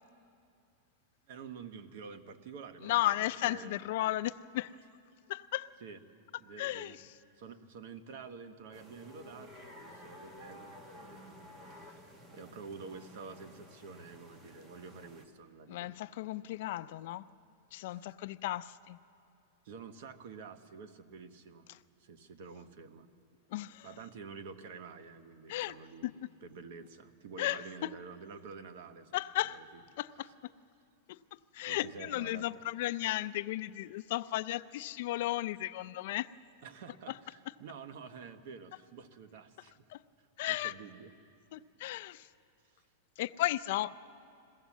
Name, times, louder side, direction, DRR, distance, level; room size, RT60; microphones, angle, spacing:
voice 1, 1.3-3.0 3.4-3.8 5.8-6.0 6.4-7.0 7.3-15.9 19.6-21.7 22.0-23.1 23.8-26.1 26.4-29.1 29.5-29.6 31.7-32.5 36.6-39.8 40.5-41.1, right 5 dB, 55° right, 10 dB, 1.1 m, -49 dB
voice 2, 2.8-4.7 5.3-5.7 6.6-7.1 15.7-17.2 17.7-19.0 21.7-21.8 23.5-23.9 25.5-25.8 26.0-26.1 27.4-27.9 29.1-29.6 30.0-30.3 31.1-36.3 37.1-37.2 39.9-40.0 40.4-40.7 41.5-42.3 43.2-44.0, left 16 dB, 50° left, 14 dB, 0.4 m, -35 dB
sound 1, 8.7-15.3, left 1 dB, 20° right, 1.3 m, -53 dB
22.0 x 16.5 x 7.3 m, 2.5 s
supercardioid pair, 170°, 0 cm